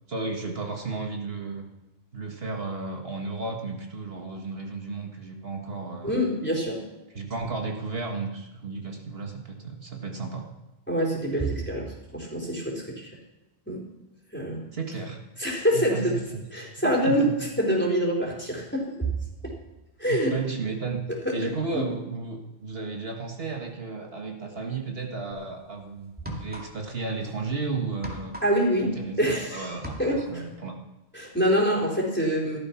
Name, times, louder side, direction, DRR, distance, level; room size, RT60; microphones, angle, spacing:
voice 1, 0.1-1.7 2.1-6.2 7.1-10.5 14.7-15.2 15.7-16.5 16.8-17.3 20.1-21.0 21.3-28.3 28.8-29.2 29.5-30.7, right 4 dB, 65° right, 2 dB, 1.8 m, -33 dB
voice 2, 6.0-6.8 10.9-13.1 13.7-13.8 14.3-14.6 15.4-16.2 16.5-17.3 17.6-18.9 19.4-19.5 20.0-20.4 21.2-21.4 21.7-21.9 28.4-28.9 29.2-30.4 31.1-32.6, equal, 10° left, -1 dB, 4.0 m, -25 dB
sound 1, 25.3-25.5 26.1-27.0 27.3-29.4 29.7-30.4, equal, 10° right, 2.5 m, -39 dB
15.5 x 12.5 x 5.9 m, 1.0 s
omnidirectional pair, 1.1 m